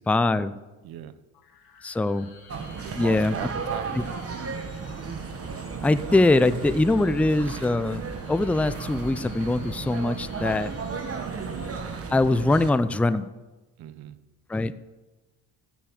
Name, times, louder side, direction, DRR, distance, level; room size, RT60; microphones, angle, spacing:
voice 1, 0.1-0.5 1.8-2.3 3.0-3.3 5.8-8.0 8.3-10.7 12.1-13.3 14.5-14.7, left 2 dB, 5° left, 13 dB, 0.4 m, -22 dB
voice 2, 0.8-1.2 2.8-4.8 13.8-14.2, right 11 dB, 75° right, 14 dB, 0.9 m, -39 dB
sound 1, 1.3-12.0, left 5 dB, 75° left, 2.5 m, -52 dB
sound 2, 2.5-12.7, right 5 dB, 40° right, 1.3 m, -34 dB
sound 3, 4.8-13.2, right 3 dB, 60° right, 2.3 m, -49 dB
13.0 x 6.8 x 7.3 m, 1.2 s
cardioid pair, 85°, 37 cm